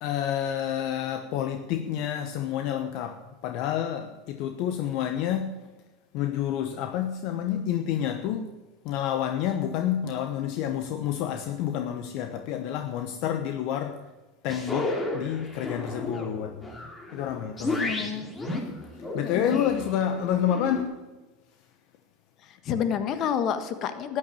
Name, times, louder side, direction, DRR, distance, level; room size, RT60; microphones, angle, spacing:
voice 1, 0.0-5.7 6.1-8.5 8.8-14.0 14.4-16.6 17.1-17.9 18.9-21.0, left 10 dB, 55° left, 1.1 m, -29 dB
sound 1, 14.5-20.8, left 2 dB, 15° left, 3.0 m, -33 dB
voice 2, 17.8-18.3 19.2-19.6 22.4-24.2, left 8 dB, 40° left, 1.5 m, -29 dB
13.0 x 10.0 x 8.6 m
supercardioid pair, 130°, 0 cm